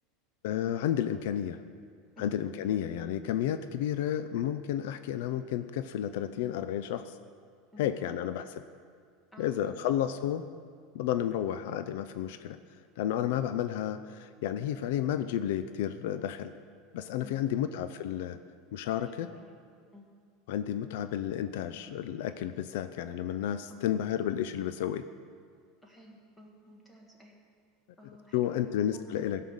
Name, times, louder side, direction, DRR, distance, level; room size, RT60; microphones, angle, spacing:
voice 1, 0.4-1.6 2.2-7.2 7.8-8.4 9.4-10.4 10.9-12.6 13.0-16.5 16.9-18.4 18.7-19.3 20.5-25.0 28.3-29.4, left 10 dB, 65° left, 11 dB, 0.4 m, -31 dB
voice 2, 7.7-8.1 9.3-9.8 11.3-11.5 17.2-17.6 19.0-19.5 19.9-20.0 23.7-23.8 25.8-27.3 28.0-29.3, left 1 dB, 5° left, -2 dB, 1.6 m, -52 dB
16.0 x 5.6 x 6.5 m, 2.1 s
supercardioid pair, 170°, 0 cm